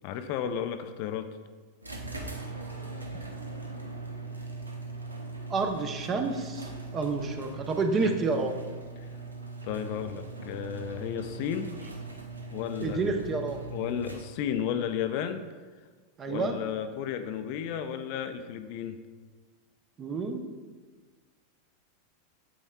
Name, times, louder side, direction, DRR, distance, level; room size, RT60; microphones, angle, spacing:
voice 1, 0.0-1.4 8.0-8.1 9.0-9.1 9.6-11.7 12.5-13.2 13.7-15.4 16.3-19.0, left 9 dB, 50° left, 9 dB, 0.4 m, -33 dB
sound 1, 1.8-14.6, right 3 dB, 85° right, 0.7 m, -40 dB
voice 2, 5.5-8.5 12.8-13.6 16.2-16.6 20.0-20.4, right 4 dB, 30° right, 6 dB, 0.7 m, -29 dB
8.3 x 7.1 x 2.3 m, 1.4 s
figure-of-eight pair, 90°, 0 cm